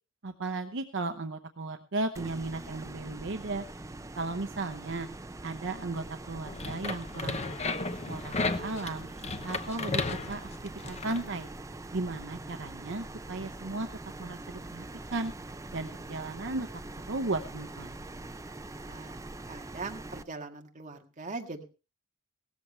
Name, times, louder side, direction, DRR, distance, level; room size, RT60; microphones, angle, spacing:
voice 1, 0.2-3.6 4.2-5.1 5.4-7.4 7.6-9.1 9.4-10.5 10.9-11.5 11.9-13.9 14.2-14.4 14.7-14.8 15.1-15.3 15.7-16.7 17.1-18.0, right 2 dB, 65° right, 7 dB, 0.9 m, -35 dB
sound 1, 2.2-20.2, right 2 dB, 15° right, 0.6 m, -43 dB
sound 2, 6.4-11.2, left 3 dB, 35° left, 0.9 m, -34 dB
voice 2, 18.9-19.2 19.5-21.6, right 3 dB, 35° right, 3 dB, 1.8 m, -41 dB
17.5 x 13.5 x 3.3 m, 0.32 s
head